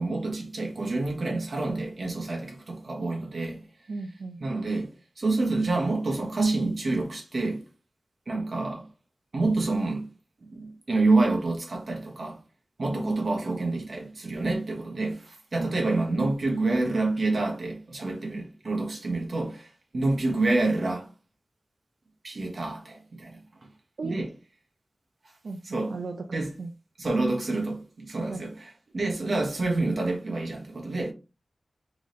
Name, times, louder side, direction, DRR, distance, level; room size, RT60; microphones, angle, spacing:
voice 1, 0.0-3.6 4.4-4.9 5.2-7.6 8.3-8.9 9.3-10.1 10.4-12.4 12.8-19.6 19.9-21.1 22.2-23.4 24.0-24.3 25.7-25.9 26.3-26.5 27.0-28.5 28.9-31.1, right 2 dB, 60° right, 1.3 m, -27 dB
voice 2, 3.9-4.4 15.6-15.7 18.3-18.5 19.1-19.2 24.0-24.2 25.4-26.7 28.3-28.5, right 3 dB, 85° right, 0.7 m, -37 dB
3.9 x 3.8 x 3.1 m
wide cardioid pair, 95°, 0 cm